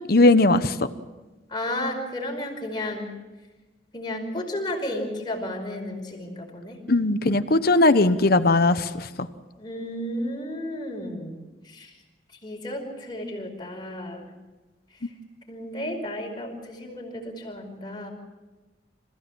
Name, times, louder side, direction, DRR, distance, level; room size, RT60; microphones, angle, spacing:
voice 1, 0.1-0.7 6.9-9.1, left 2 dB, 55° left, 11 dB, 1.0 m, -18 dB
voice 2, 1.5-3.1 3.9-6.8 9.6-11.4 11.6-11.9 12.4-14.3 15.5-18.1, left 1 dB, 25° left, 0 dB, 5.2 m, -33 dB
27.0 x 16.0 x 7.3 m, 1.2 s
head